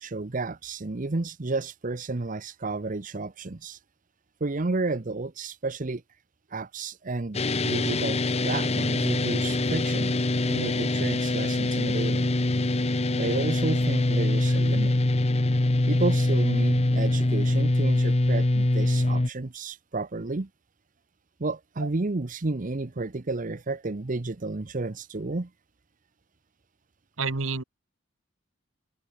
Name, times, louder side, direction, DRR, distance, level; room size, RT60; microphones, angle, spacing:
voice 1, 0.0-3.8 4.4-6.0 6.5-10.1 10.5-12.3 13.1-14.9 15.9-20.5 21.4-25.5, right 3 dB, 40° right, 0.8 m, -31 dB
sound 1, 7.3-19.3, left 2 dB, 30° left, 1.0 m, -24 dB
voice 2, 27.2-27.6, right 4 dB, 85° right, 1.6 m, -29 dB
head